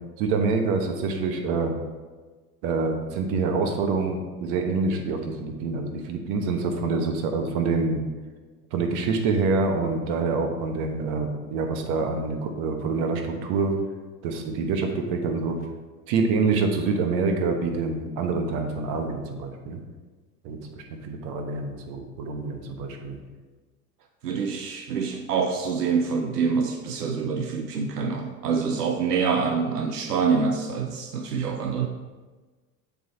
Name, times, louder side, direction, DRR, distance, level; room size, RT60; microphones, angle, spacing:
voice 1, 0.2-1.7 2.6-8.0 8.7-13.7 14.2-15.6 16.1-19.8 20.4-23.2, right 4 dB, 55° right, 4 dB, 1.1 m, -26 dB
voice 2, 24.2-31.9, right 5 dB, 85° right, 4 dB, 0.6 m, -26 dB
7.3 x 3.6 x 4.1 m, 1.3 s
hypercardioid pair, 80°, 45 cm